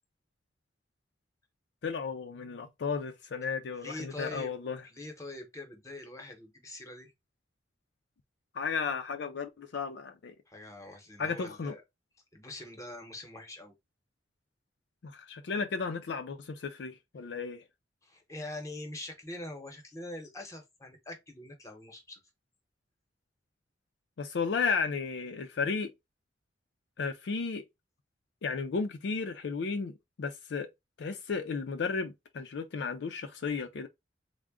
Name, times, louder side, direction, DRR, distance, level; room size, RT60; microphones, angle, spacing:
voice 1, 1.8-4.8 8.6-10.4 11.2-11.7 15.0-17.6 24.2-25.9 27.0-27.6 28.4-29.9 30.2-30.7 31.0-33.9, left 5 dB, 65° left, 0.4 m, -34 dB
voice 2, 3.8-4.5 4.8-7.1 10.5-11.8 12.3-13.7 18.0-22.2, left 2 dB, 20° left, 0.9 m, -44 dB
3.6 x 2.1 x 3.5 m
head